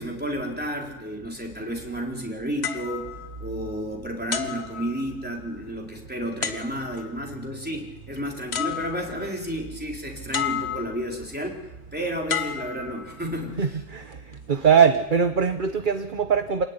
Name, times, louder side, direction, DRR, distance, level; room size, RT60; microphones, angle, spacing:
voice 1, 0.0-3.0 3.4-11.6 11.9-13.8, equal, 5° right, 0 dB, 4.0 m, -31 dB
sound 1, 2.6-3.8 4.3-5.5 6.4-7.1 8.2-8.3 8.5-9.3 10.3-11.1 12.3-13.4 14.1-14.4, left 8 dB, 55° left, 1.7 m, -32 dB
voice 2, 13.6-14.2 14.5-16.6, right 7 dB, 45° right, 8 dB, 1.1 m, -21 dB
27.0 x 16.5 x 9.8 m, 1.1 s
omnidirectional pair, 1.3 m